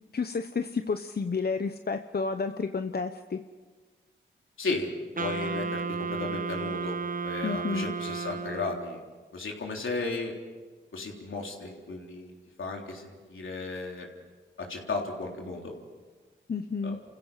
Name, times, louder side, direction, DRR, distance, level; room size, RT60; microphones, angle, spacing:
voice 1, 0.1-3.4 7.4-7.9 16.5-17.0, left 4 dB, 50° left, 8 dB, 0.9 m, -31 dB
voice 2, 4.6-4.9 5.2-6.9 7.2-9.1 9.3-10.3 10.9-14.1 14.6-15.8 16.8-17.0, left 3 dB, 75° left, 0 dB, 3.6 m, -35 dB
Wind instrument woodwind instrument, 5.2-9.0, right 4 dB, 40° right, 1.3 m, -33 dB
29.0 x 16.0 x 5.8 m, 1.4 s
cardioid pair, 45°, 21 cm